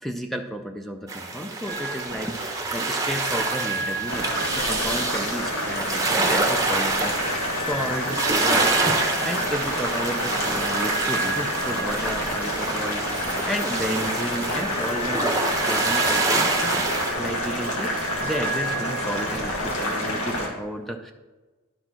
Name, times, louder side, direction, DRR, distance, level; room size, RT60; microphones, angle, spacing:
voice 1, 0.0-16.8 17.1-21.1, equal, ahead, 5 dB, 0.3 m, -32 dB
sound 1, 1.1-17.1, right 3 dB, 15° right, 0.8 m, -27 dB
sound 2, 1.7-20.0, right 2 dB, 25° left, 1.9 m, -35 dB
Boiling, 4.1-20.5, left 1 dB, 80° left, 1.7 m, -28 dB
11.0 x 4.3 x 4.4 m, 1.2 s
head